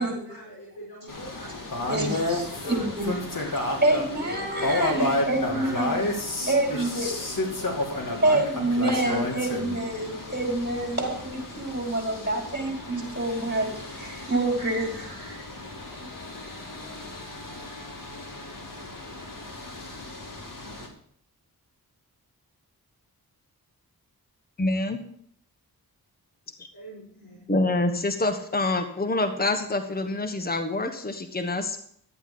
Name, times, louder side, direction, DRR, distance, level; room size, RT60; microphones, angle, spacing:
voice 1, 0.0-2.1 2.5-4.5 4.8-6.0 6.3-8.4 9.0-9.9 26.7-27.4, right 1 dB, 75° left, -4 dB, 4.8 m, -43 dB
sound 1, 1.1-20.9, left 2 dB, 55° left, 2.8 m, -32 dB
voice 2, 1.9-3.1 3.8-6.0 6.5-7.1 8.2-15.4, right 2 dB, 25° right, 0 dB, 4.6 m, -27 dB
voice 3, 24.6-25.0 27.5-31.8, left 2 dB, 25° left, 6 dB, 1.3 m, -26 dB
12.0 x 8.3 x 5.3 m, 0.63 s
cardioid pair, 65°, 38 cm